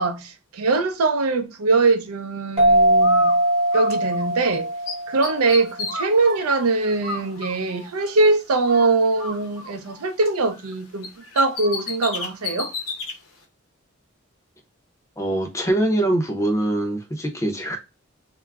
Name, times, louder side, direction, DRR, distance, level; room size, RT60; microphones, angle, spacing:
voice 1, 0.0-3.4 3.7-4.7 5.1-11.1 11.4-12.7, right 3 dB, 90° right, 0.5 m, -22 dB
sound 1, 2.6-5.9, right 1 dB, 25° right, 0.8 m, -20 dB
Bird, 3.0-4.6 4.9-8.3 8.6-10.7 11.0-13.2, left 3 dB, 80° left, 0.7 m, -33 dB
voice 2, 15.2-17.8, right 1 dB, 15° left, 0.4 m, -23 dB
2.2 x 2.0 x 3.3 m
head